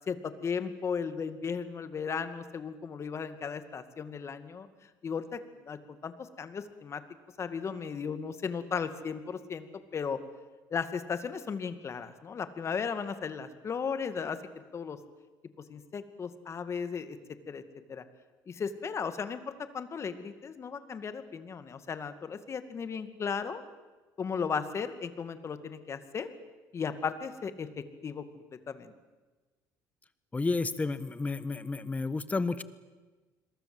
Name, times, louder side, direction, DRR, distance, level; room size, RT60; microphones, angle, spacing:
voice 1, 0.0-4.7 5.0-5.4 5.6-7.0 7.4-9.7 9.9-10.2 10.7-14.4 14.7-15.0 15.7-17.2 17.5-17.6 17.9-18.0 18.5-23.6 24.2-26.3 26.7-27.7 28.0-28.9, left 6 dB, 40° left, 10 dB, 2.3 m, -35 dB
voice 2, 30.3-32.6, left 3 dB, 20° left, 15 dB, 1.4 m, -31 dB
28.0 x 22.0 x 8.0 m, 1.2 s
cardioid pair, 100°, 8 cm